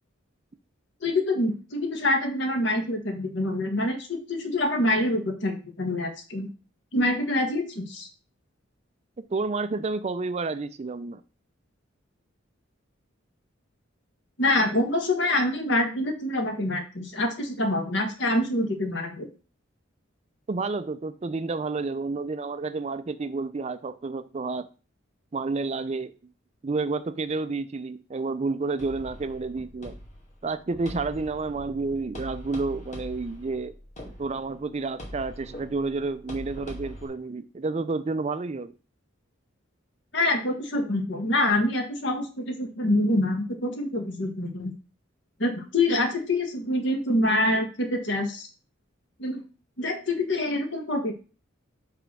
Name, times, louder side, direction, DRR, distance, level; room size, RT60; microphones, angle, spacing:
voice 1, 1.0-6.5 6.9-8.1 14.4-19.3 40.1-44.7 45.4-48.5 49.2-49.4 49.8-51.1, left 1 dB, 60° left, 1.5 m, -26 dB
voice 2, 9.2-11.2 20.5-24.7 25.3-26.1 26.6-29.9 30.4-33.7 34.2-38.7, right 3 dB, 30° right, 0.4 m, -30 dB
sound 1, 28.8-37.1, equal, 35° left, 2.2 m, -42 dB
5.2 x 4.6 x 6.0 m
head